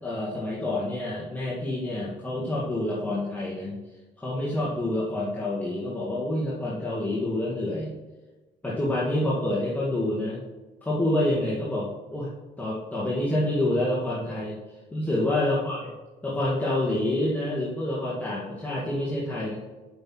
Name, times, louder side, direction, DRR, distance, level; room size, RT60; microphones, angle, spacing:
voice 1, 0.0-3.7 4.2-7.9 8.6-10.4 10.8-12.3 12.6-14.6 14.9-15.8 16.2-19.5, left 1 dB, 10° left, -7 dB, 1.8 m, -27 dB
7.9 x 5.5 x 4.5 m, 1.2 s
cardioid pair, 110°, 17 cm